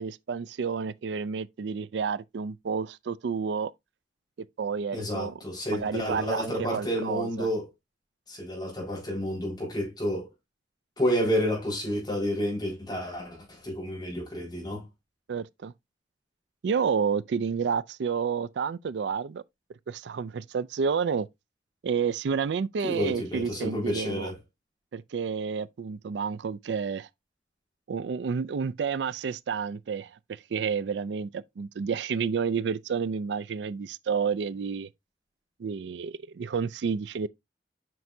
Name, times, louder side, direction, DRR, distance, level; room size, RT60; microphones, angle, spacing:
voice 1, 0.0-3.7 4.6-5.4 5.7-7.5 15.3-15.7 16.6-19.4 19.9-21.3 21.8-24.3 24.9-27.1 27.9-34.9 35.6-37.3, right 6 dB, 85° right, 0.4 m, -30 dB
voice 2, 4.9-7.7 8.3-10.3 11.0-14.9 22.8-24.4, equal, 25° left, 4.5 m, -30 dB
7.7 x 5.9 x 2.6 m
head